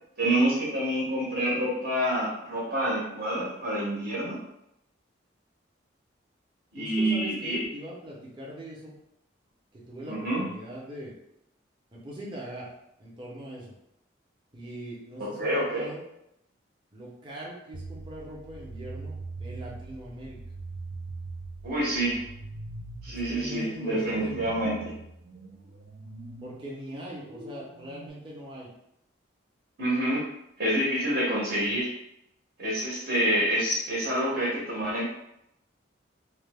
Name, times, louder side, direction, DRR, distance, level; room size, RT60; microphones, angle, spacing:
voice 1, 0.2-4.4 6.7-7.6 10.1-10.5 15.2-15.9 21.6-22.2 23.0-24.9 29.8-30.2 30.6-31.9 32.6-35.0, right 1 dB, 55° right, -6 dB, 0.8 m, -27 dB
voice 2, 6.8-8.9 9.7-11.1 11.9-12.7 13.0-13.7 14.5-16.0 16.9-20.4 23.3-24.5 26.4-28.7, right 1 dB, 25° right, -5 dB, 0.6 m, -41 dB
sound 1, 17.7-28.1, right 3 dB, 75° right, 0.4 m, -42 dB
2.8 x 2.1 x 3.3 m, 0.80 s
head